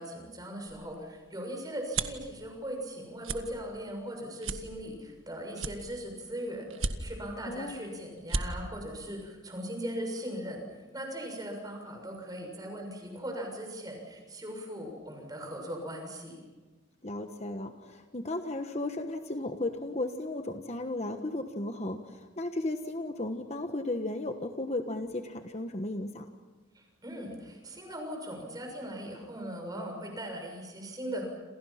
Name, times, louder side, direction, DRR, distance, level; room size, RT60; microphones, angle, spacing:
voice 1, 0.0-10.6 10.9-16.4 26.7-31.3, equal, 20° right, 2 dB, 6.7 m, -39 dB
sound 1, 0.7-2.3 2.8-3.0 3.2-3.4 3.9-4.0 4.4-5.2 5.5-6.2 6.7-7.3 7.8-7.9 8.2-8.5, right 4 dB, 90° right, 1.7 m, -34 dB
voice 2, 7.5-7.8 17.0-26.3, left 2 dB, 35° left, 6 dB, 1.3 m, -35 dB
29.0 x 28.0 x 5.9 m, 1.3 s
head